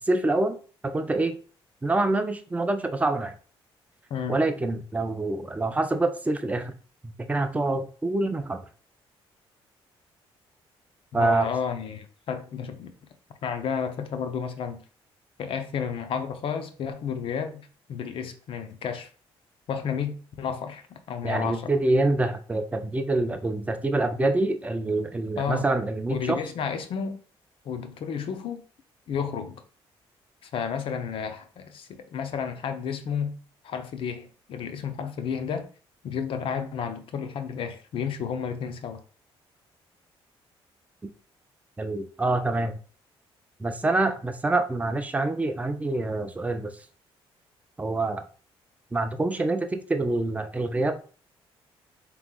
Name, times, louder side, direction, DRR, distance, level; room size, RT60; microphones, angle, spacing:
voice 1, 0.1-0.6 0.8-1.4 1.8-3.3 4.3-6.7 7.0-8.7 11.1-11.5 21.2-26.4 41.0-41.1 41.8-42.8 43.6-46.7 47.8-48.2 48.9-51.0, right 2 dB, 15° right, 0.5 m, -26 dB
voice 2, 4.1-4.4 11.1-12.9 13.4-14.8 15.4-19.1 19.7-21.8 25.4-25.7 26.1-27.2 27.6-28.6 29.1-29.6 30.4-33.4 33.6-35.7 36.0-39.0, left 7 dB, 60° left, 0.7 m, -32 dB
3.8 x 3.0 x 3.7 m
cardioid pair, 100°, 10 cm